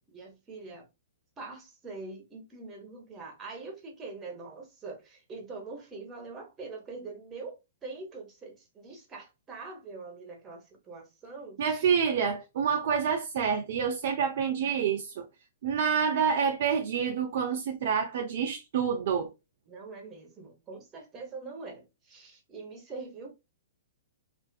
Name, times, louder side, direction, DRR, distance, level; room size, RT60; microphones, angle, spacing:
voice 1, 0.1-0.8 1.4-11.9 19.7-23.3, right 3 dB, 20° right, 0.9 m, -43 dB
voice 2, 11.6-15.3 15.6-19.3, right 7 dB, 55° right, 0.3 m, -27 dB
2.4 x 2.3 x 2.2 m
figure-of-eight pair, 115°, 0 cm